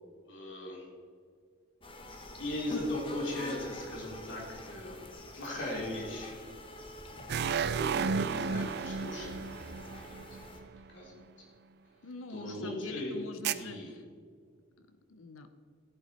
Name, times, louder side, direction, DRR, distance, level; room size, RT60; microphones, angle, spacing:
voice 1, 0.3-0.9 2.4-5.0 5.3-6.4 7.7-9.4 9.7-9.9 10.3-10.4 10.9-11.2 12.3-13.1 13.6-13.9, left 1 dB, 60° left, -2 dB, 2.8 m, -38 dB
sound 1, 1.8-10.6, left 1 dB, 25° left, 1.1 m, -46 dB
sound 2, 7.3-10.8 13.4-13.5, right 5 dB, 55° right, 0.4 m, -32 dB
voice 2, 12.0-14.0 14.8-15.5, left 3 dB, 85° left, 9 dB, 0.7 m, -46 dB
14.5 x 8.2 x 4.2 m, 2.1 s
head